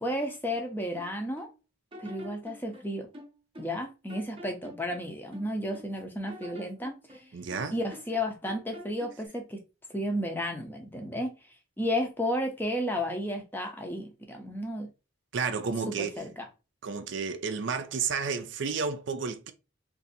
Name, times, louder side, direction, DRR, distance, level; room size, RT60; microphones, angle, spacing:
voice 1, 0.0-1.5 2.0-3.1 3.6-7.2 7.7-9.6 9.9-11.3 11.8-14.9 15.9-16.5, equal, 10° left, 0.6 m, -33 dB
sound 1, 0.5-1.6 1.9-3.8 4.1-5.9 6.3-8.2 8.5-9.3, equal, 25° right, 0.7 m, -47 dB
voice 2, 7.3-7.7 15.3-16.2 16.8-19.5, right 5 dB, 60° right, 0.4 m, -31 dB
2.6 x 2.6 x 4.0 m
head